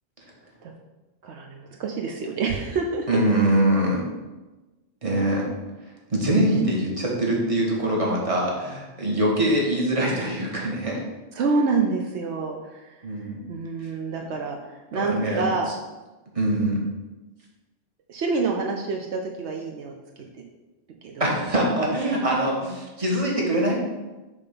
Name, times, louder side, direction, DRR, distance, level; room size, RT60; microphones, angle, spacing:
voice 1, 1.2-3.1 11.3-13.0 13.5-15.7 18.1-20.2 21.0-21.4, right 4 dB, 75° right, 2 dB, 1.0 m, -27 dB
voice 2, 3.1-4.1 5.0-5.5 6.1-11.0 13.0-13.4 14.9-15.4 16.3-16.8 21.2-23.7, right 1 dB, 30° right, -3 dB, 1.6 m, -23 dB
7.0 x 3.6 x 5.8 m, 1.1 s
omnidirectional pair, 1.2 m